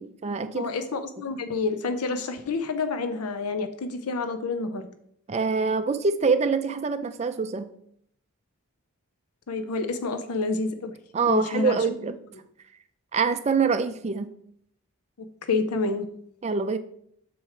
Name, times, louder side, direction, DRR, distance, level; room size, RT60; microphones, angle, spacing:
voice 1, 0.0-0.7 5.3-7.7 11.1-12.1 13.1-14.3 16.4-16.8, right 5 dB, 30° right, 10 dB, 0.3 m, -25 dB
voice 2, 0.5-4.8 9.5-10.9 11.3-11.8 15.5-16.1, left 3 dB, 85° left, 9 dB, 0.6 m, -28 dB
7.0 x 4.4 x 4.8 m, 0.69 s
head